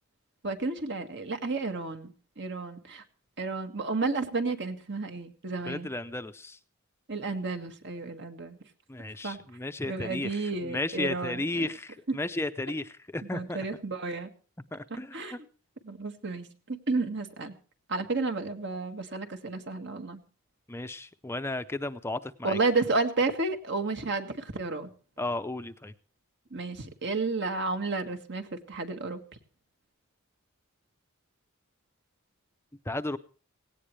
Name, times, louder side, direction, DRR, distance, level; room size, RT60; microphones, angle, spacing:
voice 1, 0.4-3.0 3.4-5.9 7.1-8.6 9.2-9.4 9.9-11.7 13.3-14.3 14.9-15.4 15.8-17.5 17.9-20.2 22.4-24.9 26.5-29.2, right 3 dB, 60° right, 7 dB, 1.9 m, -32 dB
voice 2, 5.7-6.6 8.9-13.6 14.7-15.4 20.7-22.6 25.2-25.9 32.9-33.2, left 2 dB, 10° left, 10 dB, 0.6 m, -34 dB
17.5 x 17.5 x 3.2 m, 0.36 s
head